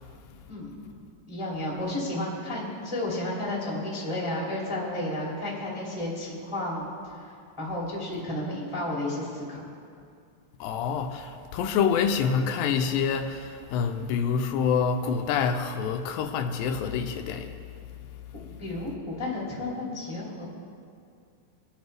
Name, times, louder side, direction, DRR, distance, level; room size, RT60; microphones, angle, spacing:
voice 1, 1.3-6.9 7.2-7.3 7.6-9.6 18.3-20.5, left 1 dB, 10° left, 2.2 m, -32 dB
voice 2, 10.6-17.6, left 6 dB, 85° left, 2.3 m, -27 dB
21.0 x 8.0 x 3.4 m
omnidirectional pair, 4.0 m